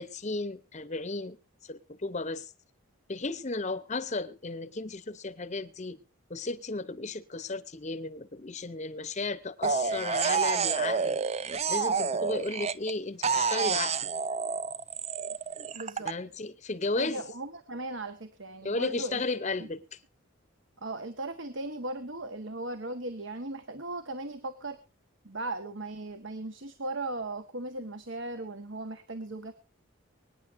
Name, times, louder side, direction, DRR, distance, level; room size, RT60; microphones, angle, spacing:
voice 1, 0.0-1.4 1.7-2.5 3.1-6.0 6.3-11.2 11.7-14.0 16.0-17.2 18.6-19.8, left 3 dB, 35° left, 0.8 m, -34 dB
sound 1, 9.6-12.9 13.2-16.1, right 5 dB, 30° right, 0.5 m, -29 dB
voice 2, 15.7-16.1 17.0-19.2 19.6-19.7 20.8-24.8 25.2-29.5, right 2 dB, 60° right, 1.4 m, -37 dB
24.5 x 9.8 x 2.6 m
head